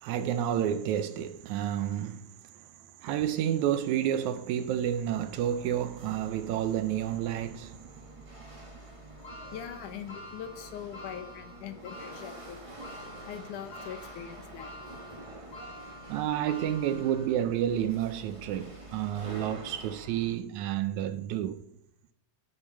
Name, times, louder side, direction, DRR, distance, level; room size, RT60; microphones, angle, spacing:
voice 1, 0.0-2.3 3.0-7.8 16.1-21.6, right 10 dB, 75° right, 1.9 m, -30 dB
Chatter / Hiss / Rattle, 3.6-20.4, right 1 dB, 20° right, 0.9 m, -48 dB
sound 1, 9.2-17.6 18.1-18.2 19.4-19.5, left 1 dB, 35° left, 2.9 m, -48 dB
voice 2, 9.5-12.6 13.3-14.7, left 9 dB, 75° left, 2.6 m, -42 dB
9.6 x 7.8 x 6.3 m
omnidirectional pair, 3.7 m